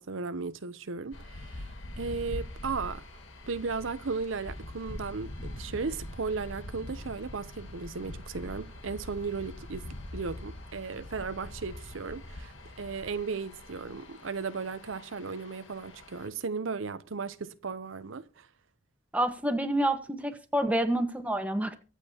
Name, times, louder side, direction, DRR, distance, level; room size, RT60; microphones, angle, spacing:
voice 1, 0.0-3.1 3.5-9.8 10.1-18.5, right 4 dB, 75° right, 0.7 m, -36 dB
sound 1, 1.1-16.3, left 1 dB, 70° left, 1.7 m, -43 dB
voice 2, 19.1-21.7, right 1 dB, 5° right, 1.4 m, -28 dB
23.5 x 8.3 x 2.9 m
head